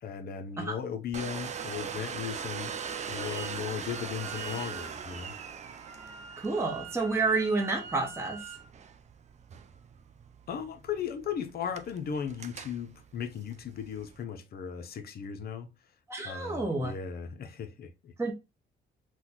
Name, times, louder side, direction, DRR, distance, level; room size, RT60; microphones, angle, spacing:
voice 1, 0.0-5.3 10.5-15.7 16.2-18.1, left 7 dB, 50° left, 0.5 m, -37 dB
Domestic sounds home sounds, 1.1-14.2, right 7 dB, 35° right, 0.3 m, -41 dB
Wind instrument woodwind instrument, 3.2-3.6 3.8-8.7, right 5 dB, 90° right, 0.6 m, -46 dB
voice 2, 6.4-8.5 16.1-16.9 18.2-18.3, right 3 dB, 15° right, 0.7 m, -29 dB
3.8 x 2.2 x 2.8 m
cardioid pair, 90°, 20 cm